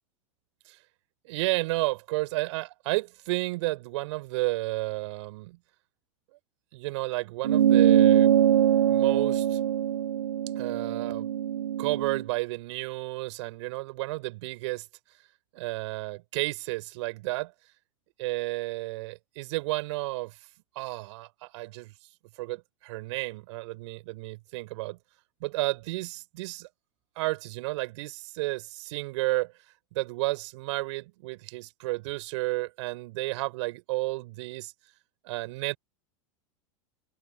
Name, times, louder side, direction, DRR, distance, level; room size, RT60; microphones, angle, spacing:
voice 1, 1.2-5.6 6.7-8.4 8.9-9.6 10.5-11.3 11.8-14.9 15.5-17.5 18.2-20.4 20.8-21.9 22.4-25.0 25.4-26.7 27.2-29.5 29.9-34.7 35.2-35.8, right 22 dB, 65° right, 5.6 m, -32 dB
sound 1, 7.4-12.2, right 10 dB, 90° right, 0.6 m, -23 dB
open air
hypercardioid pair, 100°, 17 cm